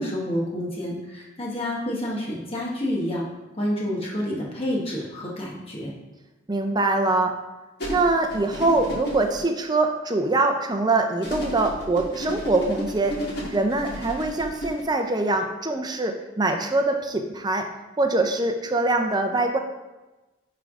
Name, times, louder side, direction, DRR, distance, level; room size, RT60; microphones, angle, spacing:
voice 1, 0.0-3.3 3.6-5.9, left 1 dB, 30° left, -3 dB, 1.3 m, -28 dB
voice 2, 6.5-7.4 7.9-13.2 13.5-17.7 18.0-19.6, right 2 dB, 20° right, 5 dB, 0.5 m, -23 dB
sound 1, 7.8-9.4 11.2-14.8, equal, 55° left, 1.8 m, -32 dB
10.0 x 3.4 x 3.6 m, 1.1 s
head